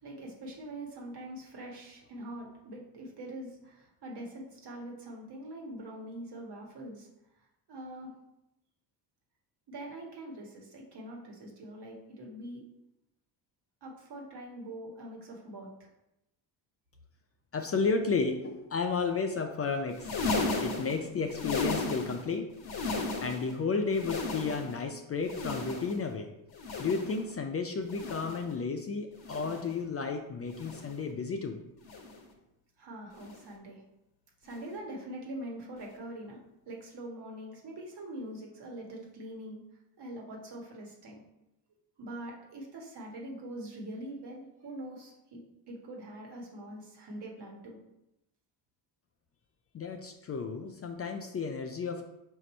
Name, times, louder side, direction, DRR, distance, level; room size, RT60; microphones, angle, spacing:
voice 1, 0.0-7.1 7.7-8.1 9.7-12.6 13.8-15.7 32.8-33.8 34.4-36.4 36.7-39.6 40.0-41.2 42.0-45.4 45.7-47.8, right 1 dB, 55° right, -1 dB, 1.4 m, -43 dB
voice 2, 17.5-20.2 20.6-22.5 23.2-26.3 26.8-31.6 49.7-52.0, left 4 dB, 30° left, 4 dB, 0.4 m, -32 dB
sound 1, 19.9-22.3 22.6-23.5 23.9-24.8 25.2-26.1 26.5-27.3 27.8-28.5 29.2-29.7 30.5-31.0 31.8-32.3 33.2-33.5 34.5-34.7 35.8-35.9, left 3 dB, 50° left, 1.1 m, -35 dB
4.7 x 2.6 x 4.2 m, 0.88 s
supercardioid pair, 70°, 47 cm